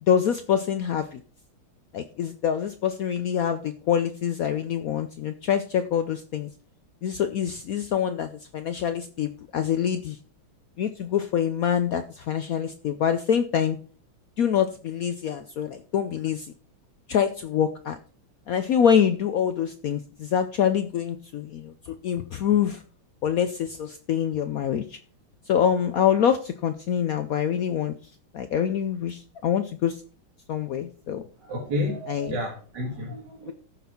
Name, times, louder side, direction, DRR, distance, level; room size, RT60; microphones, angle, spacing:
voice 1, 0.0-1.2 1.9-6.5 7.0-10.2 10.8-13.8 14.4-16.5 17.1-18.0 18.5-22.8 23.2-25.0 25.5-27.9 28.3-30.0 30.5-31.2 32.1-32.4 33.5-33.6, left 8 dB, 85° left, 9 dB, 0.7 m, -25 dB
voice 2, 31.4-33.5, left 1 dB, 55° right, -1 dB, 2.3 m, -31 dB
14.5 x 6.0 x 4.3 m, 0.39 s
omnidirectional pair, 2.3 m